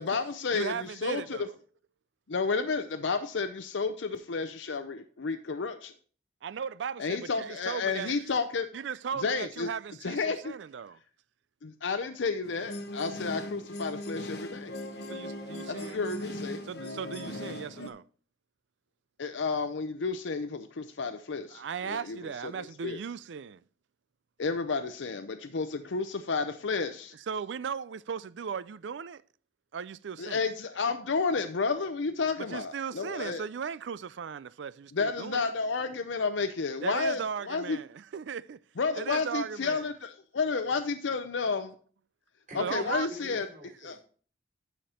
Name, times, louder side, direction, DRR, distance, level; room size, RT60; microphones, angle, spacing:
voice 1, 0.0-1.4 2.3-5.9 7.0-8.7 9.2-9.7 10.0-10.5 11.6-14.7 15.7-16.6 19.2-22.2 22.4-23.0 24.4-27.1 30.2-33.4 34.9-37.8 38.8-41.7 42.5-43.5 43.8-44.0, left 4 dB, 90° left, 0.6 m, -31 dB
voice 2, 0.5-1.5 6.4-8.3 8.7-11.0 15.1-16.0 16.7-18.0 21.5-23.6 27.1-29.2 29.7-30.5 32.5-35.5 36.8-38.6 38.9-39.9 42.5-43.1, right 6 dB, 75° right, 0.4 m, -37 dB
sound 1, 12.4-17.9, left 1 dB, 60° left, 1.0 m, -39 dB
voice 3, 42.5-44.0, equal, 40° right, 3.1 m, -46 dB
11.5 x 5.2 x 4.3 m
head